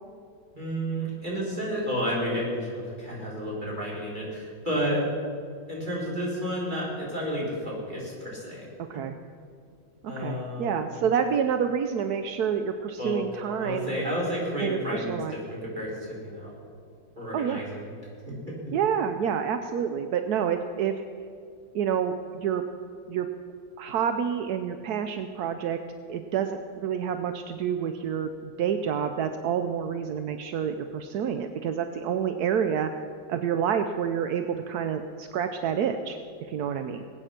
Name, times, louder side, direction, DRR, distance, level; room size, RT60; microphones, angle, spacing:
voice 1, 0.5-5.1 5.7-8.7 10.1-10.8 13.0-13.2 13.6-16.6 17.1-17.9 18.3-18.7, equal, 20° right, -5 dB, 4.4 m, -31 dB
voice 2, 8.8-9.1 10.2-13.9 14.6-15.3 17.3-17.6 18.7-20.9 21.7-22.6 23.1-23.3 23.8-25.8 26.1-32.9 33.3-36.2 36.5-37.0, right 8 dB, 70° right, 7 dB, 1.0 m, -28 dB
20.5 x 9.1 x 5.8 m, 2.4 s
omnidirectional pair, 2.2 m